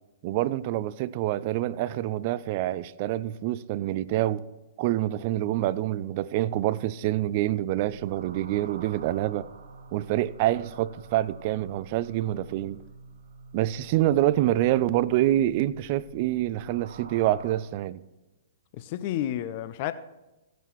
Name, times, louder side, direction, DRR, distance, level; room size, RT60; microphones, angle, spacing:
voice 1, 0.2-4.4 4.8-9.5 9.9-12.8 13.5-18.0, right 14 dB, 45° right, 0.4 m, -26 dB
sound 1, 7.7-17.6, right 3 dB, 75° right, 1.2 m, -48 dB
voice 2, 18.7-19.9, left 12 dB, 45° left, 0.5 m, -30 dB
15.5 x 9.1 x 3.1 m
hypercardioid pair, 120°, 0 cm